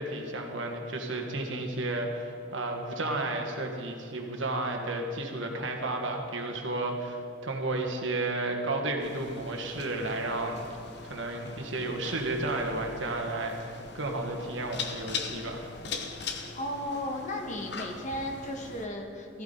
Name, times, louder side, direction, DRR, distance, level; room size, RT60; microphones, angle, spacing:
voice 1, 0.0-10.6 11.0-15.7, right 2 dB, 70° right, 2 dB, 1.7 m, -32 dB
sound 1, 9.0-18.9, left 4 dB, 60° left, 1.0 m, -41 dB
voice 2, 16.5-19.4, left 1 dB, 40° left, 1 dB, 1.5 m, -35 dB
14.5 x 14.5 x 4.0 m, 2.6 s
head